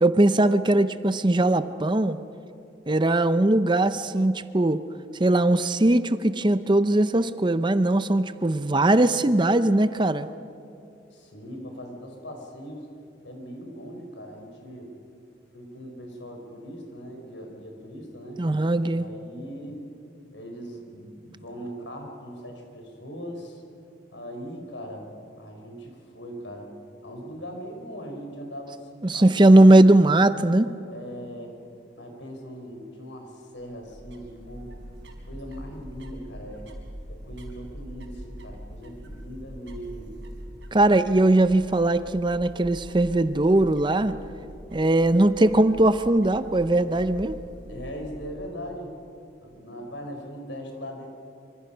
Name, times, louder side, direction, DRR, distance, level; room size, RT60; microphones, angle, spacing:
voice 1, 0.0-2.2 2.9-4.8 5.2-10.3 18.4-19.1 29.0-30.7 40.7-44.1 44.7-47.4, right 1 dB, 25° right, 12 dB, 0.6 m, -20 dB
voice 2, 11.1-12.9 13.2-14.9 15.5-18.4 18.9-19.8 20.3-23.6 24.1-25.1 25.4-26.7 27.0-29.7 30.9-31.6 31.9-34.7 35.2-36.7 37.1-40.1 47.7-48.9 49.4-51.1, equal, 90° left, 3 dB, 4.8 m, -40 dB
sound 1, 33.6-48.8, equal, 85° right, 4.4 m, -43 dB
26.0 x 25.0 x 5.7 m, 2.7 s
head